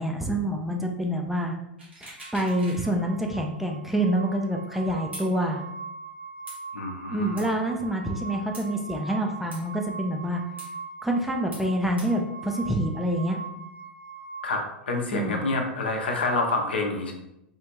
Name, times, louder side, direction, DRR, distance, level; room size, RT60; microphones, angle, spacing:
voice 1, 0.0-1.6 2.0-5.6 7.1-10.4 11.0-13.4 15.1-15.4, right 1 dB, 5° right, 1 dB, 0.4 m, -27 dB
sound 1, 1.8-2.9 3.2-3.3 5.1-5.3 6.5-6.6 7.4-7.5 8.5-8.7 9.5-9.6 10.6-10.7 11.5-11.7 12.0-12.1, right 1 dB, 85° right, 1.3 m, -42 dB
sound 2, 2.2-14.4, right 4 dB, 25° right, 0.9 m, -41 dB
voice 2, 6.7-7.4 14.4-17.1, left 2 dB, 70° left, 2 dB, 0.7 m, -28 dB
3.5 x 2.4 x 3.0 m, 0.84 s
figure-of-eight pair, 95°, 6 cm